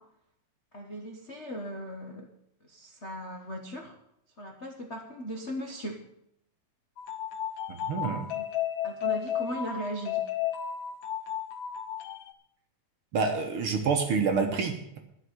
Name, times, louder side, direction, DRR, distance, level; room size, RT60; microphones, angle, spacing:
voice 1, 0.7-2.3 2.6-3.9 4.4-6.0 8.3-8.4 8.8-10.3, equal, 45° left, 1 dB, 0.8 m, -38 dB
sound 1, 7.0-12.3, left 10 dB, 85° left, 1.0 m, -33 dB
voice 2, 7.7-8.3 13.1-15.0, right 5 dB, 60° right, 4 dB, 1.7 m, -28 dB
11.5 x 6.4 x 9.4 m, 0.74 s
omnidirectional pair, 3.3 m